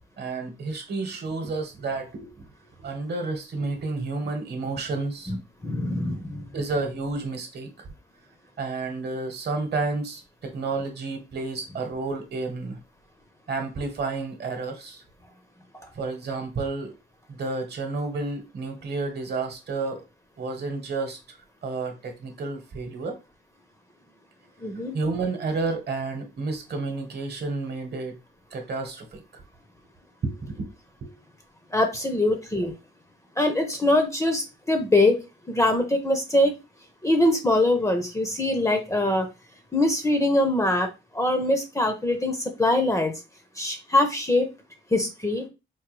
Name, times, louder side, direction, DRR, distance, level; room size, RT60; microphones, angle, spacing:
voice 1, 0.2-2.5 2.8-5.3 6.5-7.7 8.6-12.8 13.5-15.0 15.9-16.9 17.3-20.0 20.4-21.4 21.6-23.2 24.9-28.2 28.5-29.2 30.2-30.7 31.0-31.1, right 3 dB, 55° right, 1.0 m, -31 dB
voice 2, 5.6-6.5 24.6-24.9 31.7-32.7 33.4-35.2 35.5-36.5 37.0-39.3 39.7-40.9 41.1-43.1 43.6-44.5 44.9-45.4, left 1 dB, 15° left, 0.6 m, -23 dB
4.6 x 2.2 x 3.1 m
cardioid pair, 110°, 20 cm